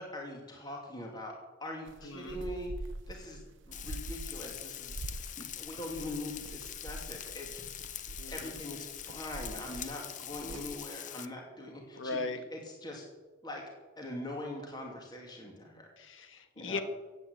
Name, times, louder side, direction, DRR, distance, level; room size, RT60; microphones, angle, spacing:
voice 1, 0.0-2.7 3.1-12.2 12.5-13.0 13.4-13.6 14.0-15.9 16.6-16.8, left 1 dB, 20° left, 0 dB, 2.6 m, -42 dB
sound 1, 1.9-10.7, right 2 dB, 65° right, 0.7 m, -45 dB
voice 2, 2.0-2.4 8.2-8.5 11.9-12.4 16.0-16.8, left 3 dB, 75° left, 8 dB, 1.5 m, -38 dB
Frying (food), 3.7-11.2, left 11 dB, 40° left, 0.6 m, -44 dB
15.5 x 9.0 x 8.1 m, 1.2 s
head